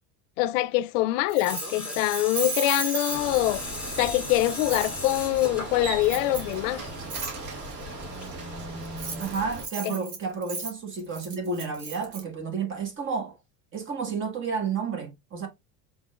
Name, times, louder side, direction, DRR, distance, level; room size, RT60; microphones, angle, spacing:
voice 1, 0.4-3.6 4.0-6.8 9.8-9.9, left 16 dB, 80° left, 0.5 m, -24 dB
Keys jangling, 1.3-3.6 4.7-4.9 6.0-6.5 7.1-7.3 8.8-12.2, right 5 dB, 85° right, 2.5 m, -35 dB
Tools, 1.5-9.2, left 2 dB, 5° right, 1.6 m, -38 dB
Bicycle, 3.1-9.7, right 2 dB, 65° right, 1.9 m, -38 dB
voice 2, 9.2-13.3 13.7-15.5, right 5 dB, 30° right, 1.4 m, -31 dB
6.2 x 3.5 x 2.4 m
cardioid pair, 140°, 38 cm